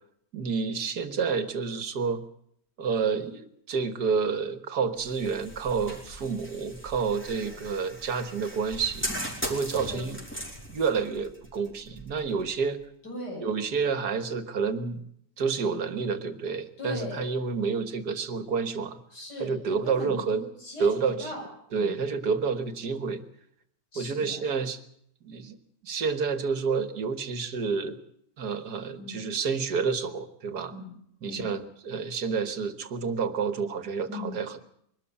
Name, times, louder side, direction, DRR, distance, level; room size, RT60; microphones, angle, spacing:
voice 1, 0.3-2.2 2.8-9.1 9.4-10.2 10.7-12.8 13.4-15.0 15.4-19.0 19.4-20.4 20.8-21.3 21.7-23.2 24.0-24.8 25.2-25.6 25.8-28.0 28.4-30.7 31.2-34.6, right 5 dB, 70° right, 11 dB, 2.0 m, -29 dB
sound 1, 5.0-12.8, equal, 5° left, 4.6 m, -39 dB
voice 2, 7.2-7.7 9.8-10.2 13.0-13.6 16.8-17.3 19.1-19.6 19.8-21.5 21.8-22.0 23.9-24.5 29.0-29.2 30.7-30.9 31.2-31.5 34.1-34.4, left 2 dB, 75° left, -2 dB, 8.7 m, -39 dB
22.5 x 13.0 x 10.0 m, 0.71 s
omnidirectional pair, 1.8 m